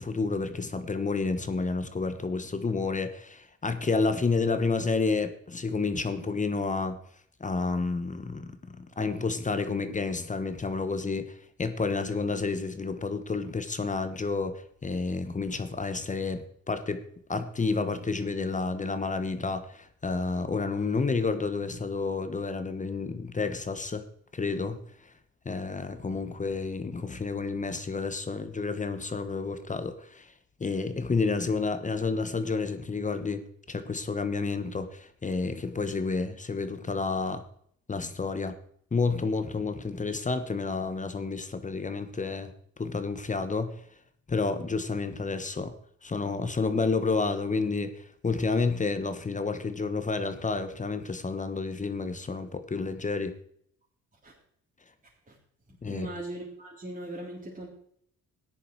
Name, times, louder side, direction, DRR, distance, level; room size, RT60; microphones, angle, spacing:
voice 1, 0.0-7.0 7.4-24.0 24.3-24.8 25.4-30.3 30.6-37.4 37.9-38.6 38.9-42.5 42.8-43.8 44.3-45.8 46.0-53.4 55.8-56.1, left 4 dB, 25° left, 1.1 m, -30 dB
voice 2, 55.9-57.7, right 1 dB, 25° right, 3.5 m, -39 dB
13.5 x 10.0 x 4.7 m
cardioid pair, 90°, 30 cm